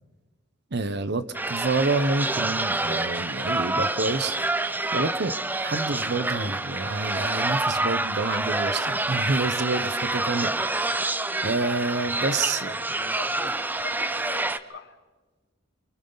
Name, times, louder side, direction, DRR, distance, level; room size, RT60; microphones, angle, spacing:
voice 1, 0.7-4.4 4.9-10.5 11.4-12.7, right 3 dB, 60° right, 0.9 m, -28 dB
sound 1, 1.3-14.6, right 2 dB, 10° right, 0.5 m, -27 dB
voice 2, 11.9-15.0, left 3 dB, 60° left, 1.6 m, -42 dB
27.0 x 24.5 x 4.0 m
head